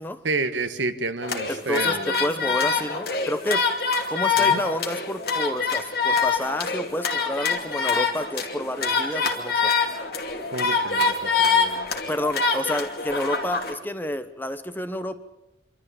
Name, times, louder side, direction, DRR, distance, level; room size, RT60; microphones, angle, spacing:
voice 1, 0.2-2.3 4.4-4.6 10.5-11.9, right 3 dB, 90° right, 10 dB, 1.4 m, -30 dB
sound 1, 1.2-13.7, left 5 dB, 55° left, 2.6 m, -25 dB
voice 2, 1.5-3.6 4.1-9.7 12.1-15.2, left 1 dB, 10° left, 10 dB, 1.0 m, -29 dB
26.5 x 13.5 x 8.6 m, 0.93 s
head